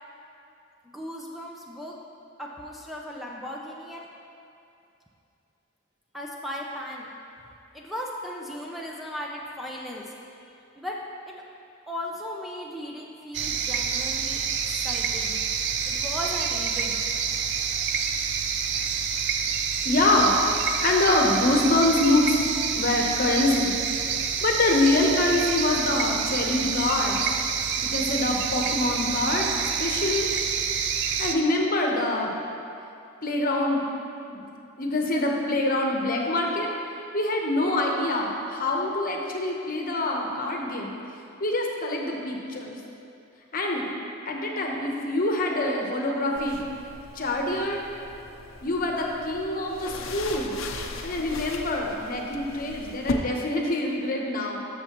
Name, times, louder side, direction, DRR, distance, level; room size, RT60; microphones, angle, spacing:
voice 1, 0.8-2.0 2.4-4.1 6.1-7.1 7.7-10.1 10.8-11.4 11.9-15.4 15.9-17.0, left 1 dB, ahead, -3 dB, 0.6 m, -36 dB
sound 1, 13.3-31.3, right 7 dB, 60° right, 0.5 m, -28 dB
voice 2, 19.8-20.4 20.6-22.4 22.7-23.7 24.4-27.2 27.8-30.3 31.2-32.3 33.2-33.8 34.3-34.4 34.8-36.7 37.1-40.9 41.4-42.8 43.5-43.9 44.3-46.6 47.1-47.8 48.6-50.6 51.0-54.6, left 2 dB, 45° left, 0 dB, 1.0 m, -25 dB
sound 2, 46.4-53.1, left 3 dB, 75° left, 0.6 m, -38 dB
13.0 x 6.6 x 3.0 m, 2.7 s
head